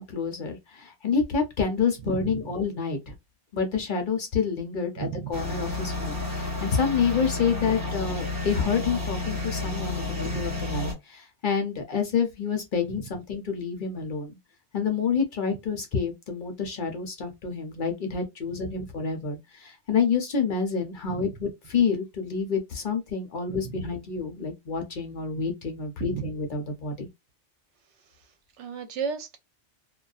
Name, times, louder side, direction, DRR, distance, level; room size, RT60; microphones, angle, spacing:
voice 1, 0.0-3.1 3.5-14.4 14.7-27.1, left 6 dB, 50° left, 0.7 m, -28 dB
voice 2, 2.0-2.4 5.0-5.3 10.2-10.5 21.1-21.3 23.5-23.8 26.1-26.2 28.6-29.4, right 7 dB, 80° right, 1.0 m, -34 dB
sound 1, 5.3-10.9, left 2 dB, 20° right, 1.4 m, -31 dB
2.5 x 2.3 x 2.3 m
omnidirectional pair, 1.2 m